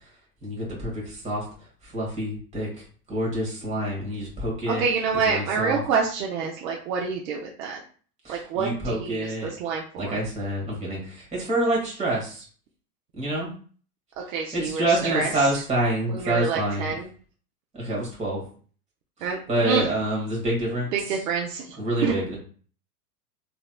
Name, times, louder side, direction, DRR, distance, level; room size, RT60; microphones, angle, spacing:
voice 1, 0.4-1.4 1.8-4.8 5.2-5.8 8.2-9.5 10.0-12.4 13.2-13.5 14.5-16.9 17.7-18.4 19.5-20.9 21.8-22.4, right 1 dB, 15° right, -3 dB, 1.4 m, -27 dB
voice 2, 4.7-7.8 8.3-10.2 14.3-15.6 16.1-17.1 19.2-19.9 20.9-22.2, right 5 dB, 60° right, 0 dB, 0.7 m, -27 dB
3.1 x 2.9 x 2.2 m, 0.42 s
hypercardioid pair, 130°, 47 cm